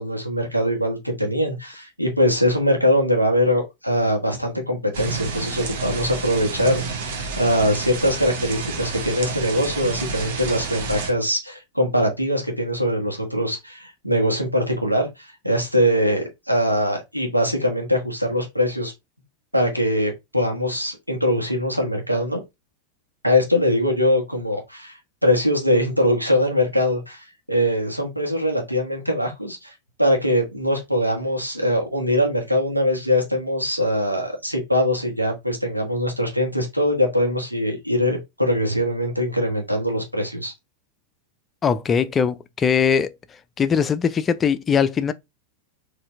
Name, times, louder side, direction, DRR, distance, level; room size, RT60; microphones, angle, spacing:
voice 1, 0.0-18.9 19.5-22.4 23.2-29.7 30.0-40.5, equal, 90° right, 1.2 m, -22 dB
sound 1, 4.9-11.1, right 4 dB, 55° right, 0.9 m, -30 dB
voice 2, 41.6-43.1 43.6-45.1, left 7 dB, 20° left, 0.4 m, -20 dB
4.2 x 2.6 x 3.5 m
figure-of-eight pair, 90°, 0 cm